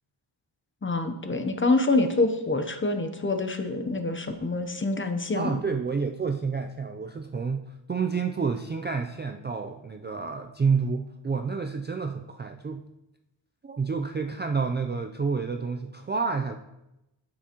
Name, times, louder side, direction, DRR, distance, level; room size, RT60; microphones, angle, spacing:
voice 1, 0.8-5.6, left 2 dB, 25° left, 7 dB, 0.7 m, -26 dB
voice 2, 5.4-7.6 7.9-12.8 13.6-16.6, right 5 dB, 25° right, 4 dB, 0.3 m, -29 dB
8.5 x 7.4 x 2.9 m, 0.92 s
wide cardioid pair, 100°, 49 cm